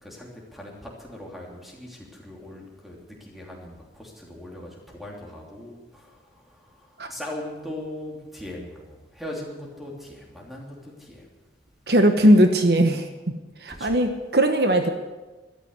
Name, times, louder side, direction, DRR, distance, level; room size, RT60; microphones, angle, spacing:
voice 1, 0.0-11.3 13.7-14.0, left 1 dB, ahead, -2 dB, 3.1 m, -40 dB
voice 2, 11.9-13.1 13.6-14.9, right 1 dB, 60° right, 6 dB, 1.2 m, -18 dB
13.5 x 13.0 x 8.1 m, 1.2 s
head